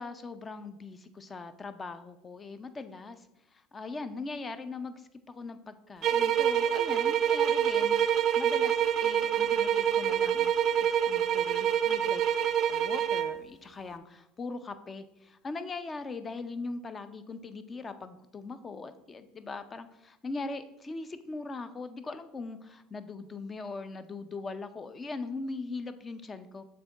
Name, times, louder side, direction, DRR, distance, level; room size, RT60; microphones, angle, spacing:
voice 1, 0.0-3.2 3.7-12.2 12.7-26.6, left 3 dB, 25° left, 11 dB, 0.5 m, -40 dB
sound 1, 6.0-13.4, right 9 dB, 50° right, 0.4 m, -26 dB
6.8 x 3.7 x 3.9 m, 0.90 s
supercardioid pair, 90°, 0 cm